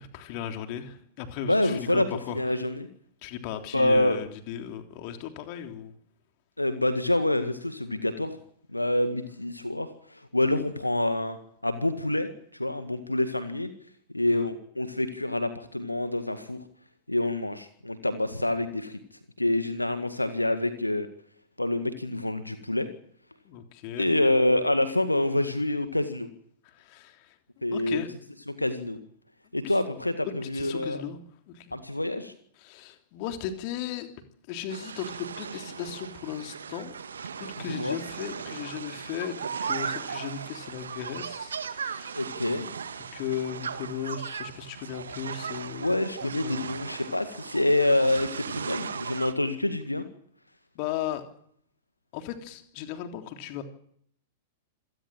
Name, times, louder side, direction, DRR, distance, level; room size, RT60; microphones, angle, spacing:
voice 1, 0.0-2.6 3.2-5.9 14.3-14.5 23.5-24.1 26.6-27.4 27.7-28.1 29.6-29.8 30.2-31.2 31.5-31.7 32.6-34.1 34.5-36.9 37.4-42.3 43.1-46.7 50.8-51.2 52.1-53.6, left 9 dB, 45° left, 6 dB, 3.4 m, -36 dB
voice 2, 1.5-2.1 2.3-2.9 3.7-4.2 6.6-8.4 8.7-11.4 11.6-12.3 12.6-13.7 14.1-16.6 17.1-19.0 19.4-21.1 21.6-22.9 24.0-26.3 27.6-28.0 28.5-29.0 29.5-31.0 31.7-32.3 37.7-38.0 42.2-42.7 45.8-50.1, left 1 dB, 85° left, 10 dB, 1.9 m, -27 dB
sound 1, 34.7-49.3, right 6 dB, 70° right, 1.6 m, -37 dB
27.0 x 18.0 x 7.6 m, 0.66 s
figure-of-eight pair, 100°, 0 cm